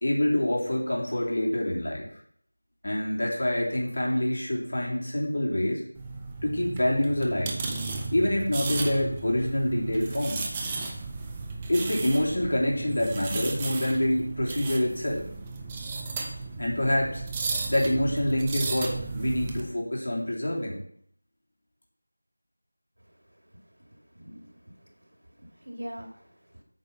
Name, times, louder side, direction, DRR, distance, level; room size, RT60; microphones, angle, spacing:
voice 1, 0.0-2.1 2.8-5.8 6.4-7.6 8.1-10.4 11.7-15.2 16.6-17.2 17.7-20.8, left 1 dB, 55° left, -3 dB, 3.2 m, -26 dB
sound 1, 6.0-19.6, right 3 dB, 10° right, 0.5 m, -34 dB
voice 2, 24.1-24.9 25.4-26.6, equal, 80° right, 2 dB, 2.4 m, -43 dB
8.7 x 4.9 x 5.5 m, 0.66 s
figure-of-eight pair, 175°, 0 cm